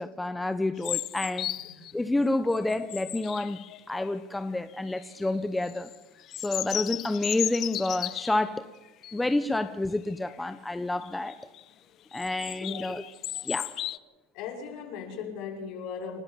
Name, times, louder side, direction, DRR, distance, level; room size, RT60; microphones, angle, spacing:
voice 1, 0.0-1.5 1.9-3.6 3.9-5.9 6.4-8.7 9.1-11.3 12.1-13.0 13.3-13.7, left 2 dB, 10° left, 0.9 m, -29 dB
sound 1, 0.8-1.9 2.4-4.1 4.7-5.2 5.6-8.5 9.0-9.2 9.6-9.7 10.1-10.4 11.0-11.6 12.1-14.0, left 12 dB, 45° left, 0.8 m, -35 dB
voice 2, 12.6-13.0 14.3-16.2, left 6 dB, 60° left, 6.0 m, -38 dB
30.0 x 12.0 x 7.5 m
supercardioid pair, 120°, 0 cm